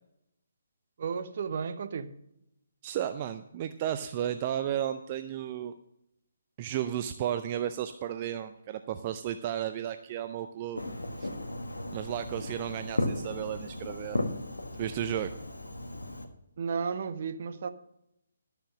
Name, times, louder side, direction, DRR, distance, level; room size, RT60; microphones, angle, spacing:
voice 1, 1.0-2.2 16.6-17.7, right 6 dB, 45° right, 11 dB, 0.8 m, -33 dB
voice 2, 2.8-5.7 6.6-10.8 11.2-11.3 11.9-14.2 14.8-15.3, right 10 dB, 30° right, 10 dB, 0.5 m, -33 dB
Fireworks, 10.8-16.3, left 1 dB, 75° left, 1.5 m, -35 dB
12.5 x 6.7 x 6.1 m, 0.80 s
figure-of-eight pair, 140°, 0 cm